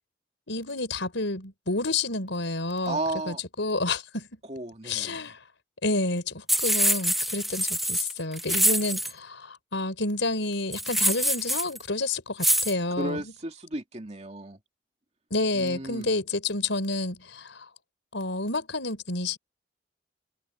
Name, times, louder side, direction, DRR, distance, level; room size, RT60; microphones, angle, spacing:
voice 1, 0.5-3.0 3.3-4.3 4.8-5.4 5.8-13.2 15.3-17.7 18.1-19.4, left 2 dB, 80° left, 4.7 m, -29 dB
voice 2, 2.8-3.4 4.5-5.2 13.0-14.6 15.5-16.1, right 2 dB, 35° right, 2.5 m, -33 dB
sound 1, 6.5-9.1 10.7-11.8 12.4-12.7, equal, ahead, 0.9 m, -25 dB
head